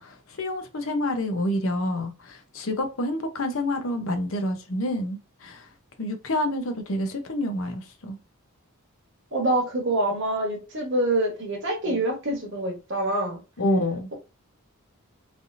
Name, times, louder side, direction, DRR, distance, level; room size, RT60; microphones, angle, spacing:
voice 1, 0.0-5.7 6.0-8.2 11.9-12.0 13.6-14.1, left 1 dB, 65° left, 0.7 m, -28 dB
voice 2, 9.3-13.4, right 1 dB, 55° right, 1.1 m, -26 dB
3.3 x 2.7 x 2.5 m
head